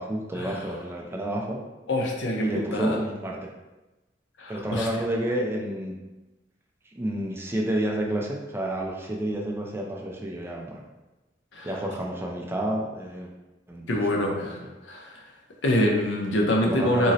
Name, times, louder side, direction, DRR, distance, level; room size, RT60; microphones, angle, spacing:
voice 1, 0.0-1.6 2.4-3.5 4.5-6.0 7.0-10.8 11.6-13.3 13.7-14.7 16.6-17.1, right 1 dB, 15° right, -1 dB, 0.3 m, -30 dB
voice 2, 1.9-3.0 4.4-4.9 11.5-11.7 13.9-15.2 15.6-17.1, left 1 dB, 80° left, 0 dB, 0.6 m, -25 dB
3.8 x 2.0 x 2.7 m, 1.1 s
head